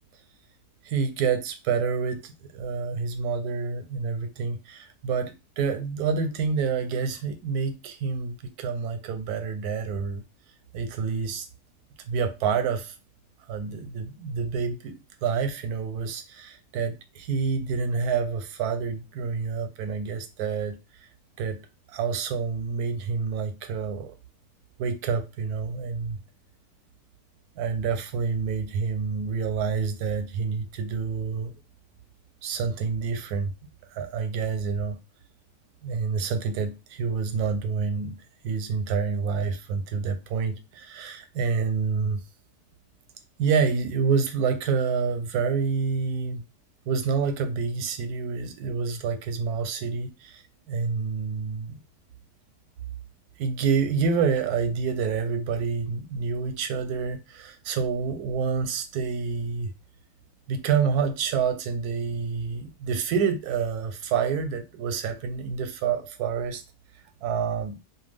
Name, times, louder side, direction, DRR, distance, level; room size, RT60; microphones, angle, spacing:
voice 1, 0.8-10.2 10.7-11.5 12.1-12.9 13.5-20.8 21.4-21.6 21.9-24.1 24.8-26.2 27.6-31.5 32.4-33.5 33.9-35.0 35.8-38.2 38.4-42.2 43.4-46.4 46.9-50.4 50.7-51.8 53.4-59.7 60.5-66.6 67.2-67.8, right 5 dB, 80° right, 1.1 m, -28 dB
2.5 x 2.2 x 3.3 m
omnidirectional pair, 1.6 m